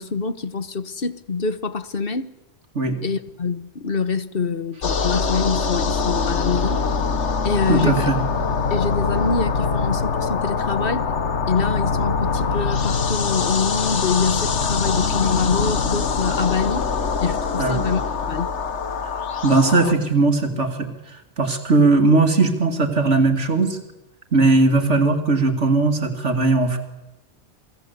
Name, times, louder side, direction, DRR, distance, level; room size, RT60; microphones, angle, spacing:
voice 1, 0.0-2.3 3.0-6.9 7.4-8.1 8.7-11.1 11.5-16.9 17.2-18.0 18.3-18.5, left 5 dB, 55° left, 1.4 m, -25 dB
sound 1, 4.8-19.9, left 5 dB, 75° left, 1.6 m, -23 dB
voice 2, 7.7-8.2 17.6-17.8 19.4-20.9 21.4-23.8 24.3-26.8, right 3 dB, 80° right, 3.0 m, -18 dB
28.5 x 20.0 x 8.2 m
omnidirectional pair, 1.2 m